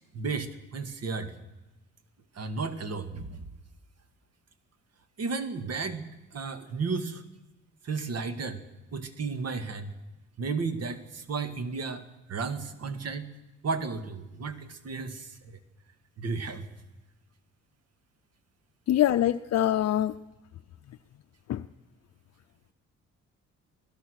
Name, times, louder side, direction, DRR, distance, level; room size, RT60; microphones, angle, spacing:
voice 1, 0.1-1.3 2.4-3.5 5.2-6.1 6.3-7.2 7.8-8.6 8.9-9.9 10.4-12.0 12.3-13.3 13.6-15.6 16.2-16.7, right 4 dB, 55° right, 9 dB, 2.0 m, -33 dB
voice 2, 18.9-20.1 21.5-21.6, left 12 dB, 55° left, 9 dB, 0.6 m, -24 dB
24.5 x 16.5 x 6.5 m, 1.0 s
cardioid pair, 90°, 30 cm